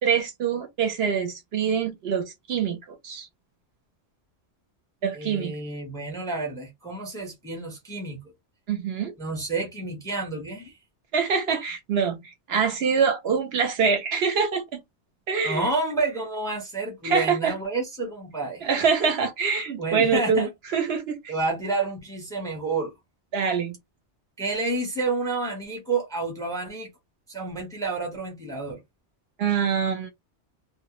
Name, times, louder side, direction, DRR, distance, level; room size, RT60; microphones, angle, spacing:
voice 1, 0.0-3.3 5.0-5.5 8.7-9.1 11.1-12.2 12.5-14.8 15.3-15.7 17.0-17.5 18.6-21.3 23.3-23.7 29.4-30.1, right 6 dB, 65° right, 0.8 m, -25 dB
voice 2, 5.1-8.2 9.2-10.7 15.4-18.7 19.8-20.5 21.3-22.9 24.4-26.9 27.3-28.8, right 3 dB, 5° left, 0.7 m, -29 dB
2.1 x 2.0 x 2.9 m
omnidirectional pair, 1.2 m